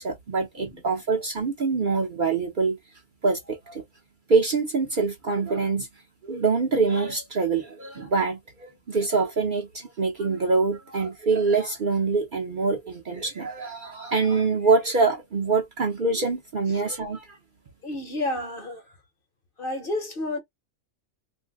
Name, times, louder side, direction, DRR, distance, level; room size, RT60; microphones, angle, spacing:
voice 1, 0.0-2.8 3.2-3.8 4.3-5.9 6.2-17.4, right 4 dB, 50° right, 0.7 m, -25 dB
voice 2, 17.8-18.9 19.6-20.4, left 1 dB, 50° left, 1.0 m, -30 dB
2.6 x 2.1 x 3.4 m
omnidirectional pair, 1.3 m